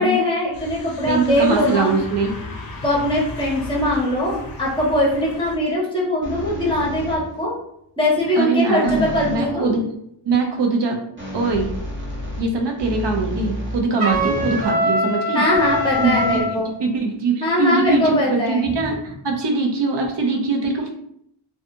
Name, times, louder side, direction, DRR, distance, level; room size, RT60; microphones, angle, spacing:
voice 1, 0.0-1.9 2.8-7.6 8.0-9.8 14.3-14.5 15.3-16.7 17.4-18.7, left 1 dB, 10° left, -5 dB, 0.8 m, -21 dB
sound 1, 0.5-5.6, left 2 dB, 45° left, 0.6 m, -35 dB
voice 2, 1.1-2.3 8.4-9.8 10.2-11.0 11.3-11.7 12.4-15.4 16.0-20.9, right 3 dB, 60° right, 3 dB, 0.6 m, -22 dB
sound 2, 6.2-7.4 8.8-9.5 11.2-14.8 15.5-17.0, equal, 25° right, 0.8 m, -32 dB
Trumpet, 14.0-16.5, equal, 90° right, 1.0 m, -22 dB
2.7 x 2.3 x 2.6 m, 0.73 s
wide cardioid pair, 140°, 48 cm